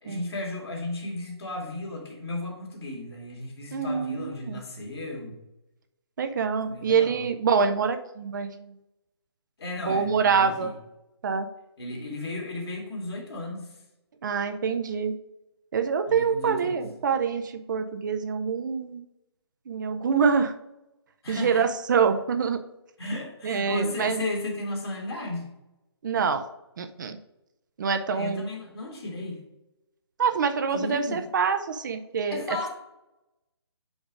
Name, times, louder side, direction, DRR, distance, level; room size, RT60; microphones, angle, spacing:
voice 1, 0.0-5.4 6.7-7.2 9.6-10.7 11.8-13.8 16.1-16.8 21.2-21.7 23.0-25.5 28.1-29.4 30.7-31.3 32.3-32.7, left 2 dB, 65° left, 0 dB, 2.2 m, -34 dB
voice 2, 3.7-4.6 6.2-8.7 9.9-10.7 11.2-11.5 14.2-15.1 15.7-19.0 19.7-20.5 21.3-22.6 23.4-24.2 26.0-26.4 26.8-27.2 27.8-28.5 30.2-32.4, right 6 dB, 45° right, 8 dB, 0.5 m, -25 dB
5.2 x 4.9 x 4.9 m, 0.93 s
figure-of-eight pair, 150°, 14 cm